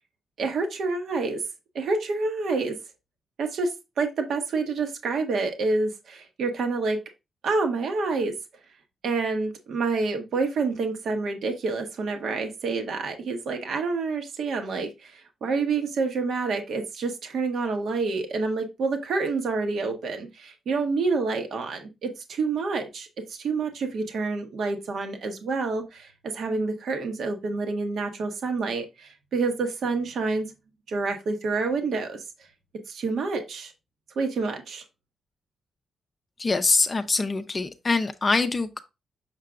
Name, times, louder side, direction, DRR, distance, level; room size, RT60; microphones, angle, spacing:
voice 1, 0.4-1.4 1.7-2.8 3.4-3.7 4.0-7.0 7.4-8.3 9.0-30.5 30.9-32.2 32.9-33.7 34.2-34.8, right 4 dB, 65° right, 1.2 m, -28 dB
voice 2, 36.4-38.8, left 3 dB, 25° left, 0.5 m, -24 dB
6.6 x 5.8 x 2.5 m
wide cardioid pair, 145°, 0 cm